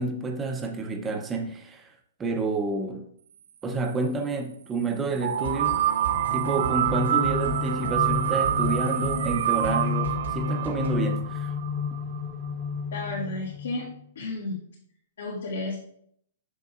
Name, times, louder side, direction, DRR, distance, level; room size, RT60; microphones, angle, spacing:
voice 1, 0.0-1.9 2.2-3.0 3.6-5.8 6.3-11.5, right 3 dB, 10° right, 4 dB, 0.6 m, -29 dB
sound 1, 5.2-12.0, right 11 dB, 60° right, 0.4 m, -27 dB
sound 2, 5.3-11.0, right 4 dB, 80° right, 1.6 m, -35 dB
sound 3, 6.1-14.0, left 6 dB, 20° left, 1.0 m, -32 dB
voice 2, 12.9-13.9 14.2-14.6 15.2-15.8, left 2 dB, 90° left, -5 dB, 1.9 m, -32 dB
7.5 x 6.5 x 2.4 m, 0.66 s
hypercardioid pair, 175°, 0 cm